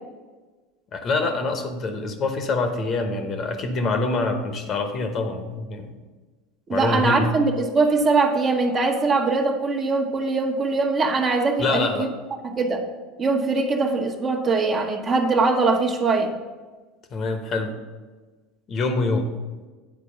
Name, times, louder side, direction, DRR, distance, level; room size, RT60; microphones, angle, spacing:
voice 1, 0.9-5.9 6.7-7.3 11.6-12.1 17.1-17.7 18.7-19.3, left 3 dB, 40° left, 6 dB, 1.0 m, -25 dB
voice 2, 6.7-12.1 12.6-12.8 13.2-16.3, right 3 dB, 35° right, 2 dB, 1.1 m, -22 dB
8.8 x 4.6 x 5.8 m, 1.3 s
hypercardioid pair, 75°, 0 cm